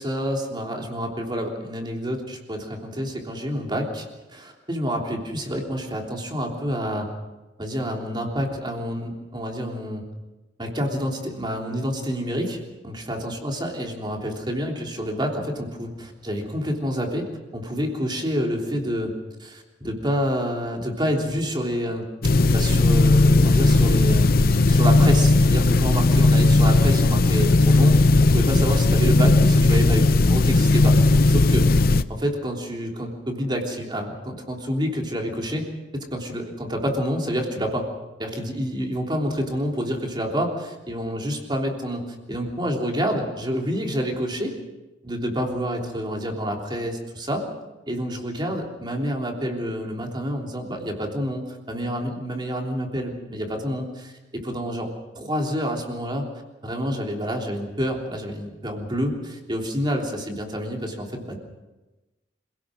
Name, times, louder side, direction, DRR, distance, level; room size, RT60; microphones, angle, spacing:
voice 1, 0.0-7.1 7.6-10.0 10.6-17.3 17.5-19.1 19.4-22.0 22.5-28.0 28.3-31.6 32.1-35.7 36.1-37.9 38.2-42.0 42.3-44.5 45.0-47.4 47.9-54.9 55.1-56.3 56.6-61.4, equal, 25° right, 1 dB, 3.4 m, -28 dB
sound 1, 22.2-32.0, left 2 dB, 55° left, 0.7 m, -17 dB
26.5 x 17.5 x 6.4 m, 1.1 s
head